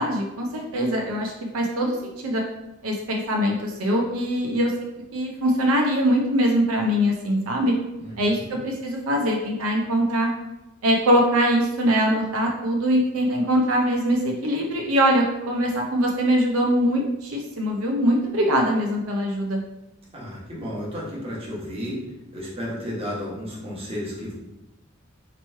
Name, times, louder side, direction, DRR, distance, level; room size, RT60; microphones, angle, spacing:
voice 1, 0.0-2.4 2.8-4.7 5.1-7.7 8.2-10.3 10.8-19.6, equal, 80° right, 0 dB, 0.6 m, -22 dB
voice 2, 8.0-8.4 20.1-22.0 22.3-24.3, equal, 25° right, -6 dB, 1.2 m, -33 dB
3.0 x 3.0 x 4.4 m, 0.96 s
head